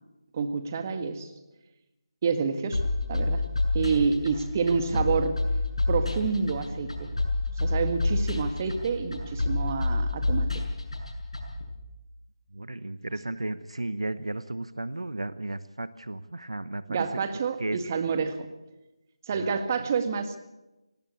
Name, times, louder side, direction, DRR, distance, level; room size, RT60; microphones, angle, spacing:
voice 1, 0.3-1.3 2.2-2.8 3.1-3.4 3.7-5.4 5.9-7.1 7.6-10.6 16.9-18.5 19.3-20.4, right 5 dB, 30° right, 9 dB, 1.7 m, -28 dB
sound 1, 2.7-11.6, left 2 dB, 80° left, 7.1 m, -28 dB
voice 2, 12.5-17.0 17.6-17.8 19.3-19.6, right 2 dB, 80° right, 15 dB, 1.0 m, -34 dB
18.0 x 17.5 x 8.5 m, 1.0 s
figure-of-eight pair, 160°, 3 cm